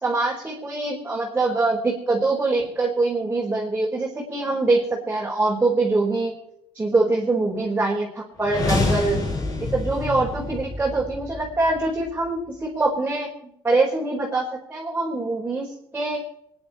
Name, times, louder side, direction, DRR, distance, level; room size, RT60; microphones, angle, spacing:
voice 1, 0.0-6.3 6.7-9.2 9.7-16.2, right 3 dB, 20° right, -3 dB, 4.7 m, -24 dB
sound 1, 8.4-12.4, left 3 dB, 40° left, 7.2 m, -28 dB
24.0 x 10.5 x 4.4 m, 0.75 s
cardioid pair, 100°, 10 cm